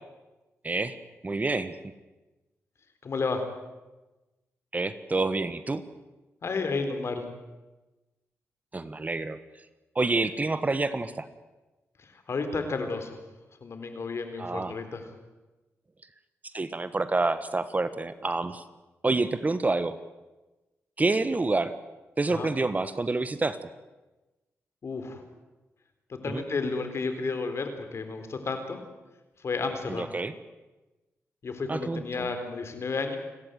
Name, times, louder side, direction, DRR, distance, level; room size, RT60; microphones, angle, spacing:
voice 1, 0.6-1.0 1.2-1.8 4.7-5.8 8.7-9.4 9.9-11.3 14.4-14.8 16.5-18.6 19.0-20.0 21.0-21.7 22.2-23.7 26.3-26.4 29.9-30.3 31.7-32.3, right 3 dB, 30° right, 13 dB, 1.3 m, -28 dB
voice 2, 3.0-3.4 6.4-7.2 12.0-13.2 13.6-15.0 22.3-22.5 24.8-25.2 26.1-28.8 29.4-30.1 31.4-33.2, left 4 dB, 55° left, 7 dB, 4.0 m, -32 dB
29.0 x 14.0 x 9.3 m, 1.1 s
cardioid pair, 80°, 5 cm